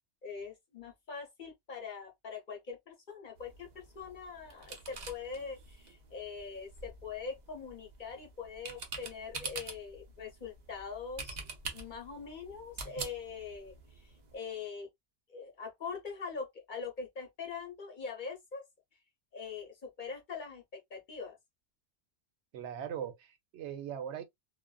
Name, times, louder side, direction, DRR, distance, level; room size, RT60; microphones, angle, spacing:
voice 1, 0.2-11.4 11.7-14.9 15.3-18.6 19.3-21.4, left 5 dB, 50° left, 0.9 m, -43 dB
sound 1, 3.4-14.4, right 4 dB, 45° right, 0.6 m, -46 dB
voice 2, 22.5-24.2, right 9 dB, 85° right, 0.9 m, -40 dB
2.4 x 2.3 x 2.2 m
omnidirectional pair, 1.1 m